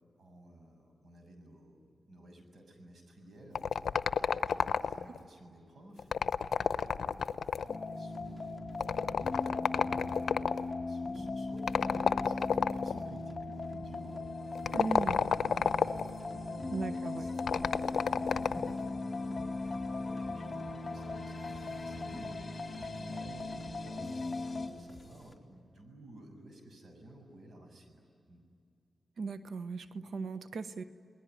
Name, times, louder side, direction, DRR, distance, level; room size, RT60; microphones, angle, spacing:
voice 1, 0.2-8.6 9.8-14.2 14.6-15.8 16.2-28.4, right 1 dB, 60° right, 5 dB, 6.8 m, -53 dB
sound 1, 3.5-5.2 6.0-7.8 8.8-10.6 11.7-13.0 14.5-16.1 17.4-18.7, left 7 dB, 80° left, 0.7 m, -30 dB
sound 2, 7.7-24.7, left 3 dB, 35° left, 3.9 m, -38 dB
sound 3, 8.1-25.3, left 1 dB, ahead, 4.2 m, -57 dB
voice 2, 14.7-15.2 16.7-17.3 29.2-30.8, right 4 dB, 80° right, 11 dB, 1.0 m, -37 dB
30.0 x 20.5 x 9.4 m, 2.4 s
cardioid pair, 75°, 0 cm